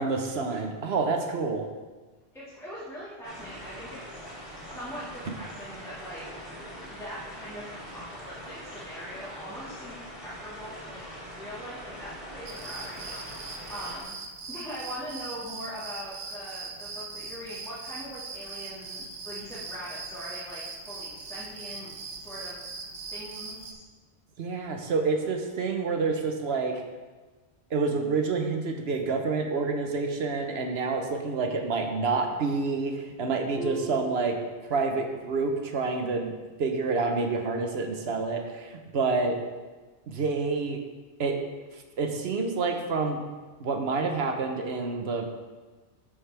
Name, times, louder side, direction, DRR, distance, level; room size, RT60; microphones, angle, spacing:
voice 1, 0.0-1.7 24.4-26.8 27.7-34.4 34.6-36.3 36.6-39.4 40.1-40.8 41.2-41.4 42.0-43.2 43.6-45.3, right 4 dB, 70° right, 4 dB, 1.2 m, -28 dB
voice 2, 2.3-4.3 4.6-6.3 6.9-11.0 11.3-14.2 14.5-22.6 23.1-23.8, equal, ahead, -12 dB, 2.0 m, -42 dB
sound 1, 3.2-14.0, equal, 40° left, 2.8 m, -43 dB
sound 2, 12.5-23.7, right 4 dB, 90° right, 1.2 m, -40 dB
Harp, 33.6-35.3 35.7-36.1 36.6-36.8, right 3 dB, 65° left, 1.3 m, -43 dB
13.0 x 5.0 x 3.4 m, 1.3 s
omnidirectional pair, 1.1 m